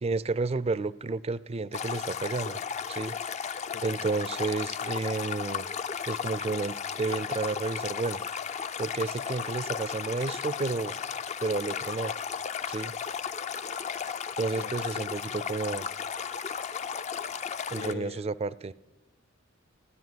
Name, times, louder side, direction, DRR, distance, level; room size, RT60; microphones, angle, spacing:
voice 1, 0.0-2.6 2.9-3.1 3.8-5.6 6.1-8.2 8.8-10.9 11.4-12.1 12.7-12.9 14.4-15.9 17.7-18.7, right 3 dB, 30° right, 19 dB, 0.4 m, -31 dB
Stream, 1.7-17.9, left 7 dB, 35° left, 0.4 m, -35 dB
voice 2, 3.7-4.0 14.5-15.2 17.7-18.3, left 4 dB, 60° left, 13 dB, 0.8 m, -43 dB
15.5 x 10.0 x 9.4 m, 1.1 s
head